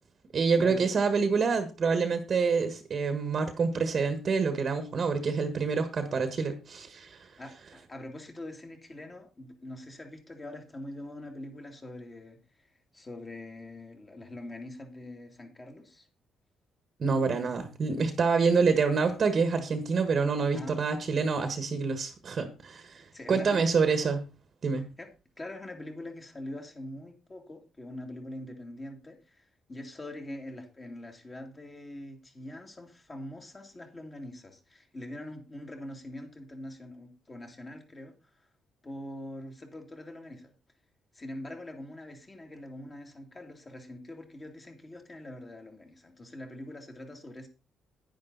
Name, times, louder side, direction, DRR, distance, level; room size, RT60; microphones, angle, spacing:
voice 1, 0.3-7.3 17.0-24.2 24.6-24.9, right 5 dB, 40° right, 8 dB, 1.6 m, -27 dB
voice 2, 7.4-12.7 12.9-16.1 20.5-20.8 23.1-23.7 25.0-25.1 25.4-38.5 38.8-40.5 41.1-47.5, left 1 dB, 20° left, 3 dB, 2.6 m, -43 dB
10.5 x 10.5 x 4.0 m, 0.30 s
cardioid pair, 135°, 0 cm